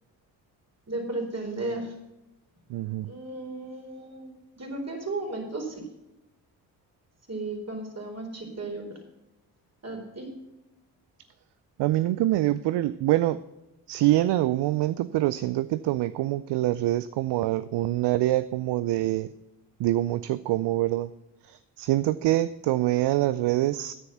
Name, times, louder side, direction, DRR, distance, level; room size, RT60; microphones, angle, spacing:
voice 1, 0.9-1.9 3.0-5.8 7.3-8.8 9.8-10.3, right 2 dB, 30° right, 4.2 m, -34 dB
voice 2, 2.7-3.1 11.8-13.4 13.9-19.3 19.8-21.1 21.4-23.9, right 15 dB, 55° right, 0.6 m, -25 dB
9.9 x 9.7 x 5.8 m
hypercardioid pair, 40°, 50 cm